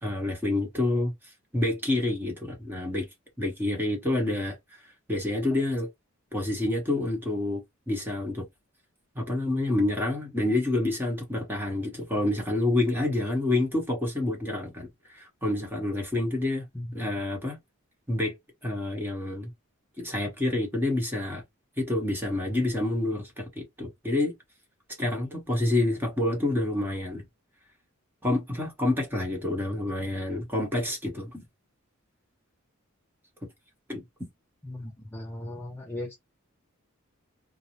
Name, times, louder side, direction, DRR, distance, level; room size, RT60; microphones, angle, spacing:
voice 1, 0.0-3.1 3.4-4.6 5.1-5.9 6.3-8.4 9.1-16.7 16.9-17.6 18.1-18.3 18.6-19.5 20.0-21.4 21.8-24.3 25.0-27.2 28.2-31.4 33.9-34.3, left 2 dB, 10° right, 1.0 m, -28 dB
voice 2, 34.6-36.2, left 1 dB, 10° left, 0.4 m, -37 dB
2.6 x 2.0 x 2.9 m
head